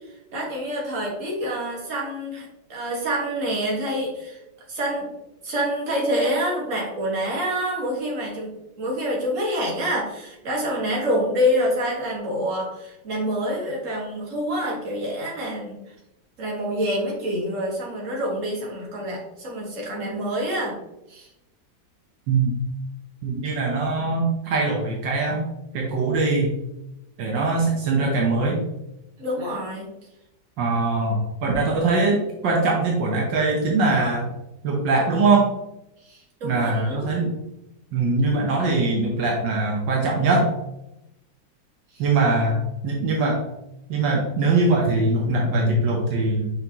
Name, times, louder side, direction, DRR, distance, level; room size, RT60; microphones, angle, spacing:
voice 1, 0.3-4.4 4.7-5.1 5.4-15.8 16.4-20.8 21.1-21.3 29.2-29.9 36.0-37.1 41.9-42.0, equal, 45° right, -2 dB, 2.0 m, -27 dB
voice 2, 23.2-25.4 25.7-26.5 27.2-28.6 30.6-34.3 34.6-35.5 36.4-37.3 37.9-40.5 42.0-43.4 43.9-46.5, right 3 dB, 75° right, -1 dB, 1.6 m, -22 dB
5.7 x 5.6 x 2.9 m, 0.90 s
omnidirectional pair, 2.0 m